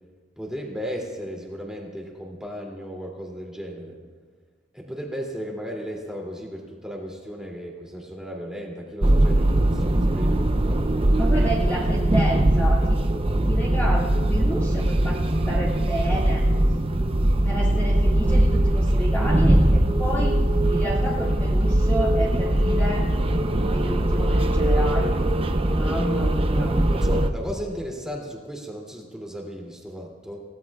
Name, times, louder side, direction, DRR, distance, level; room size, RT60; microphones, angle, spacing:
voice 1, 0.4-4.0 4.7-10.8 26.9-30.4, equal, 5° right, -1 dB, 2.8 m, -35 dB
sound 1, 9.0-27.3, right 1 dB, 30° right, 0.7 m, -21 dB
voice 2, 11.2-13.1 13.5-16.4 17.4-20.4 20.7-23.1 23.7-25.1 25.7-26.8, equal, 10° left, -6 dB, 2.1 m, -30 dB
29.0 x 17.0 x 2.4 m, 1.5 s
head